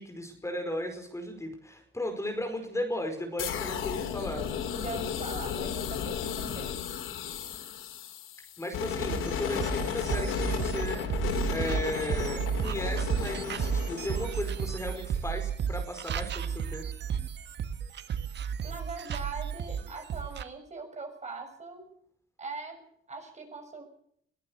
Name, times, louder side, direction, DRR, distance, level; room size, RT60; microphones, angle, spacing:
voice 1, 0.0-4.5 8.6-11.2 11.5-16.9, left 1 dB, 15° left, 5 dB, 5.0 m, -36 dB
sound 1, 3.4-15.2, left 8 dB, 90° left, 2.8 m, -34 dB
voice 2, 4.8-6.8 18.6-21.8 22.4-22.8 23.1-23.8, right 3 dB, 35° right, 4 dB, 7.0 m, -41 dB
sound 2, 9.0-20.4, right 8 dB, 60° right, 1.5 m, -33 dB
22.5 x 14.5 x 8.1 m, 0.67 s
cardioid pair, 90°, 20 cm